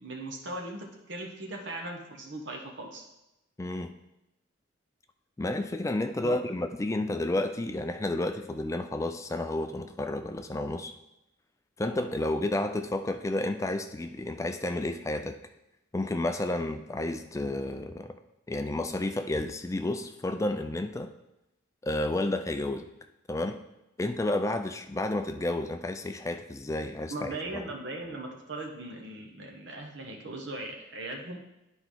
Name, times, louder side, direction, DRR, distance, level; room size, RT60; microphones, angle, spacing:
voice 1, 0.0-3.0 6.2-6.4 27.1-31.4, right 2 dB, 60° right, 1 dB, 1.2 m, -39 dB
voice 2, 3.6-3.9 5.4-10.9 11.8-15.4 15.9-18.2 18.5-21.1 21.8-22.9 23.3-23.6 24.0-27.7, left 1 dB, 15° left, 8 dB, 0.3 m, -31 dB
10.0 x 4.5 x 3.8 m, 0.91 s
head